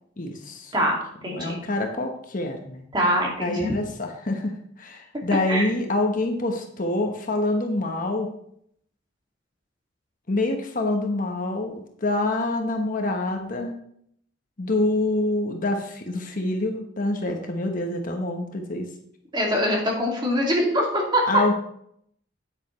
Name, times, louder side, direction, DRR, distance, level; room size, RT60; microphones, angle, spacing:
voice 1, 0.2-0.7 1.2-2.8 3.4-8.3 10.3-13.7 14.6-18.9 21.3-21.5, left 2 dB, 45° left, 3 dB, 1.1 m, -26 dB
voice 2, 0.7-1.5 2.9-3.7 5.5-5.7 19.3-21.4, equal, 25° right, -1 dB, 2.4 m, -23 dB
9.1 x 9.0 x 3.2 m, 0.68 s
head